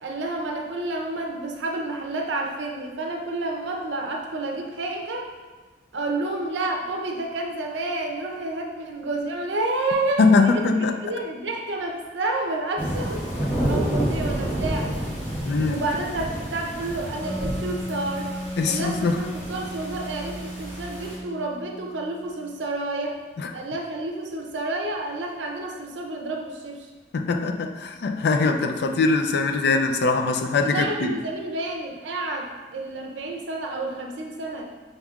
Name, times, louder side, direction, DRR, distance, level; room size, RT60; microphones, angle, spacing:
voice 1, 0.0-5.3 5.9-10.6 11.0-13.2 13.6-14.9 15.6-18.3 18.7-23.2 23.5-26.9 30.6-34.7, right 2 dB, 80° right, 2 dB, 0.6 m, -30 dB
voice 2, 10.2-11.0 15.5-15.8 18.6-19.2 23.4-23.5 27.1-31.1, left 3 dB, 65° left, 6 dB, 0.4 m, -22 dB
sound 1, 12.8-21.2, right 1 dB, 10° left, 1.3 m, -30 dB
Wind instrument woodwind instrument, 17.2-22.6, equal, 5° right, 0.5 m, -36 dB
5.4 x 3.5 x 2.3 m, 1.3 s
head